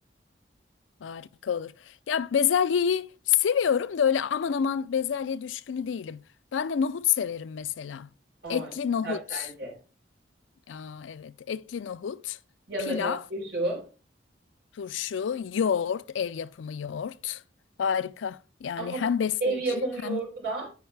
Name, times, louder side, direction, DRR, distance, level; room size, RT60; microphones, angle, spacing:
voice 1, 1.0-1.7 2.1-6.2 6.5-8.1 8.5-9.5 10.7-12.4 12.9-13.2 14.8-17.4 17.8-20.2, left 7 dB, 85° left, 0.4 m, -28 dB
voice 2, 9.0-9.7 12.7-13.9 18.8-19.0 19.4-20.7, right 2 dB, 65° right, 4.0 m, -31 dB
9.4 x 4.7 x 3.3 m
head